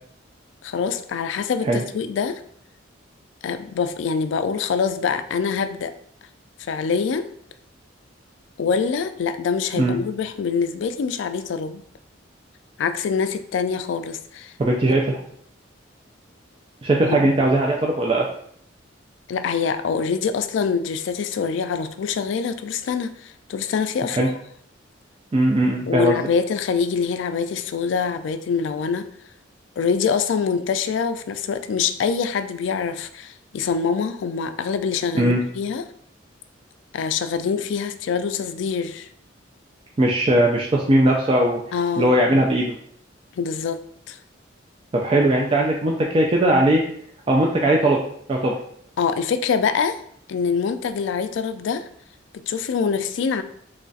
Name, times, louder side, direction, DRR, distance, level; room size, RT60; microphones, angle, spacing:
voice 1, 0.6-2.4 3.4-5.9 6.6-7.3 8.6-11.8 12.8-14.5 17.0-17.3 19.3-24.4 25.9-29.0 29.8-35.8 36.9-39.1 41.7-42.1 43.4-43.8 44.1-44.2 49.0-50.0 50.3-51.8 52.5-53.4, left 6 dB, 70° left, 11 dB, 0.3 m, -24 dB
voice 2, 14.6-15.2 16.8-18.3 24.1-24.3 25.3-26.2 35.1-35.4 40.0-41.6 42.0-42.8 44.9-46.8 47.3-48.0 48.3-48.6, right 1 dB, 30° right, -1 dB, 0.3 m, -19 dB
3.2 x 2.4 x 3.9 m, 0.65 s
head